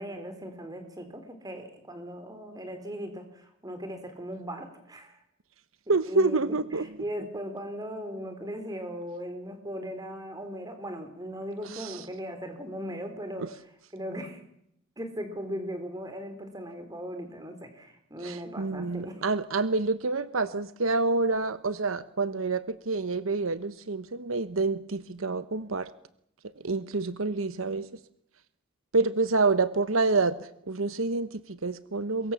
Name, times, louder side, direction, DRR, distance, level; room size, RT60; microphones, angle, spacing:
voice 1, 0.0-5.2 6.1-13.5 13.9-14.4 15.0-19.2, equal, 20° right, 7 dB, 4.0 m, -38 dB
voice 2, 5.9-6.9 11.7-12.0 18.2-25.9 26.6-27.9 28.9-32.3, right 3 dB, 80° right, 13 dB, 1.0 m, -28 dB
23.5 x 22.0 x 7.3 m, 0.75 s
head